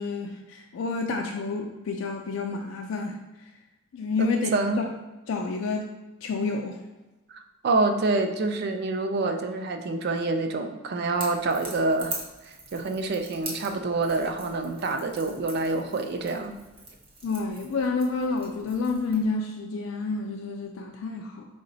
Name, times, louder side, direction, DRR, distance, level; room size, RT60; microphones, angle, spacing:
voice 1, 0.0-3.2 3.9-4.5 4.8-4.9 5.3-5.9 6.2-6.8 17.2-21.5, left 4 dB, 80° left, 2 dB, 0.4 m, -29 dB
voice 2, 4.2-4.8 7.3-12.2 12.5-16.5, right 3 dB, 55° right, 6 dB, 0.4 m, -27 dB
Crackle / Crack, 11.1-19.2, right 2 dB, 30° right, 0.8 m, -42 dB
4.7 x 2.1 x 3.9 m, 1.1 s
head